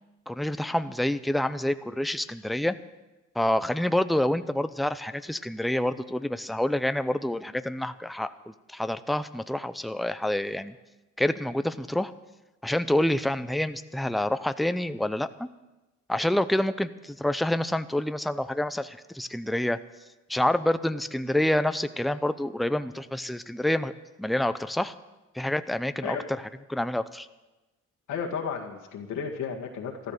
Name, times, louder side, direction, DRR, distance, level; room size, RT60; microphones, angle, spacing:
voice 1, 0.3-2.8 3.4-10.7 11.2-12.1 12.6-15.5 16.1-19.8 20.3-23.9 24.2-24.9 25.3-26.4 26.7-27.3, left 1 dB, ahead, 12 dB, 0.6 m, -27 dB
voice 2, 28.1-30.1, left 6 dB, 80° left, 0 dB, 2.0 m, -33 dB
13.5 x 13.5 x 6.7 m, 1.1 s
cardioid pair, 90°, 30 cm